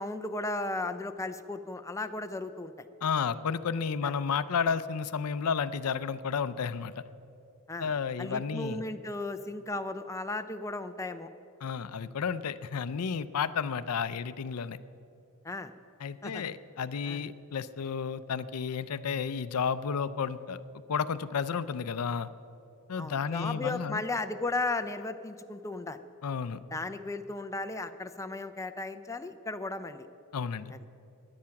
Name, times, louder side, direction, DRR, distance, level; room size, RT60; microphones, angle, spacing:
voice 1, 0.0-2.7 4.0-4.1 7.7-7.9 8.2-11.3 15.4-15.7 16.2-16.4 17.1-17.2 23.0-26.0 26.7-30.1 30.7-30.8, left 2 dB, 15° left, 8 dB, 0.5 m, -35 dB
voice 2, 3.0-6.9 7.8-8.8 11.6-14.8 16.0-20.6 20.9-22.3 22.9-24.0 26.2-26.6 30.3-30.7, left 6 dB, 80° left, 15 dB, 0.5 m, -32 dB
16.0 x 11.0 x 5.9 m, 2.8 s
head